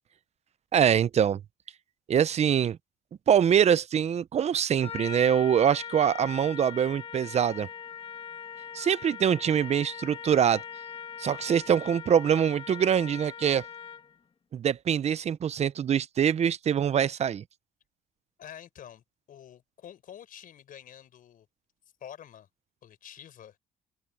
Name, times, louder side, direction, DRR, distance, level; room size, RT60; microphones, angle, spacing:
voice 1, 0.7-1.4 2.1-2.8 3.3-7.7 8.7-10.6 11.2-13.6 14.5-17.4, right 8 dB, 40° right, 0.7 m, -24 dB
Trumpet, 4.8-14.2, left 7 dB, 35° left, 2.2 m, -41 dB
voice 2, 18.4-21.5 22.0-22.5 22.8-23.6, left 10 dB, 55° left, 5.1 m, -48 dB
cardioid pair, 110°, 17 cm